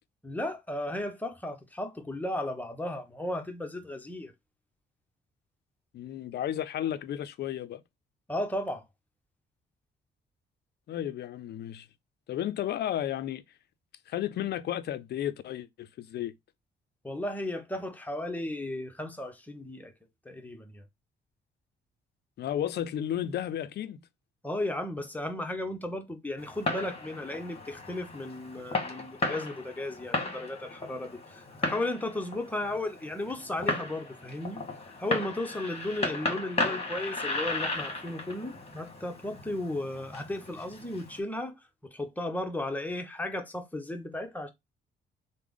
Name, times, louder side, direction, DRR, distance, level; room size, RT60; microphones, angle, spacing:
voice 1, 0.2-4.3 8.3-8.8 17.0-19.9 20.2-20.8 24.4-34.6 35.0-41.6 41.9-44.5, left 1 dB, 10° left, 0.7 m, -35 dB
voice 2, 5.9-7.8 10.9-11.9 12.3-13.4 14.1-16.3 22.4-24.0, left 11 dB, 55° left, 0.4 m, -33 dB
Fireworks, 26.4-41.2, left 2 dB, 30° left, 1.1 m, -35 dB
3.2 x 2.1 x 3.5 m
cardioid pair, 90°, 20 cm